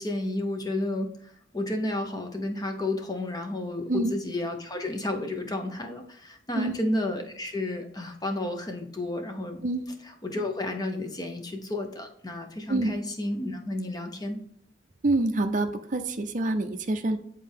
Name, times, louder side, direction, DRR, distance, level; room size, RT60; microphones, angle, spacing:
voice 1, 0.0-9.6 10.1-14.4, left 1 dB, 20° left, 4 dB, 0.7 m, -32 dB
voice 2, 15.0-17.2, right 2 dB, 40° right, 6 dB, 0.5 m, -26 dB
7.6 x 4.1 x 3.5 m, 0.69 s
head